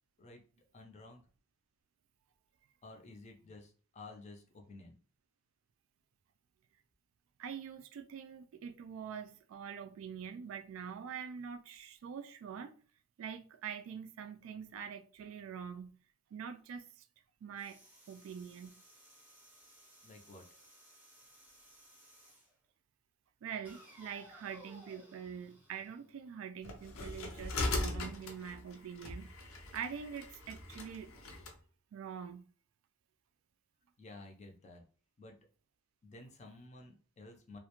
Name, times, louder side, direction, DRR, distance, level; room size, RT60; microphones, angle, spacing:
voice 1, 0.7-1.2 2.8-5.0 20.0-20.4 34.0-34.8 35.2-35.4 36.0-37.6, left 2 dB, 35° left, 0.5 m, -52 dB
voice 2, 7.4-12.7 13.2-15.9 16.3-17.1 17.4-17.8 18.1-18.7 23.4-31.1 31.9-32.4, right 7 dB, 70° right, 0.3 m, -45 dB
sound 1, 17.6-22.5 23.6-26.6, equal, 10° right, 0.7 m, -59 dB
sound 2, 26.6-31.6, left 2 dB, 80° left, 0.5 m, -40 dB
2.4 x 2.1 x 2.9 m
head